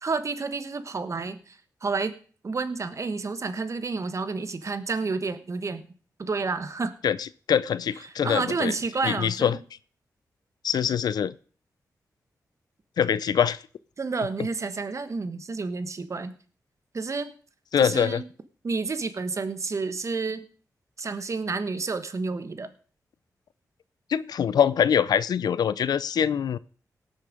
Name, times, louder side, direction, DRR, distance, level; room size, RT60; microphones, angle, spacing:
voice 1, 0.0-2.1 2.4-5.9 6.2-6.9 8.0-9.6 14.0-16.3 16.9-17.3 17.8-18.2 18.6-20.4 21.0-22.7, right 4 dB, 50° right, 1.2 m, -30 dB
voice 2, 7.0-8.7 9.0-9.6 10.6-11.3 13.0-13.6 17.7-18.2 24.1-26.6, left 8 dB, 85° left, 0.5 m, -24 dB
18.0 x 6.5 x 5.1 m
cardioid pair, 70°, 7 cm